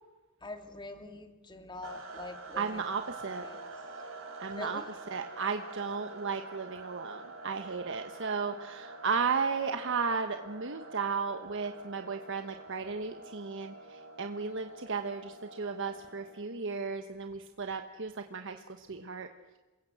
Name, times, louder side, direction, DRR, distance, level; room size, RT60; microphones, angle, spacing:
voice 1, 0.4-2.8 3.4-3.6 4.5-4.9, left 2 dB, 20° left, 6 dB, 2.7 m, -44 dB
sound 1, 1.8-16.6, right 3 dB, 80° right, 6.0 m, -47 dB
voice 2, 2.5-3.5 4.4-4.8 5.1-19.3, right 5 dB, 65° right, 6 dB, 1.2 m, -34 dB
28.5 x 22.5 x 7.9 m, 1.2 s
head